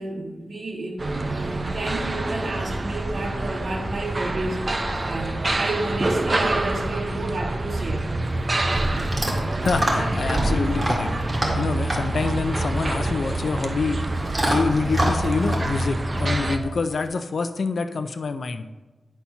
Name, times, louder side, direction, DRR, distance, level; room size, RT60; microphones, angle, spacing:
voice 1, 0.0-8.0, right 2 dB, 55° right, -3 dB, 2.0 m, -31 dB
sound 1, 1.0-16.6, right 2 dB, 35° right, 0.7 m, -26 dB
Chewing mastication / Dog, 7.9-17.1, right 1 dB, 15° right, 2.0 m, -30 dB
voice 2, 9.6-11.1 11.6-14.0 14.4-18.7, left 4 dB, 65° left, 10 dB, 0.6 m, -26 dB
10.0 x 4.3 x 5.7 m, 1.2 s
wide cardioid pair, 105°, 0 cm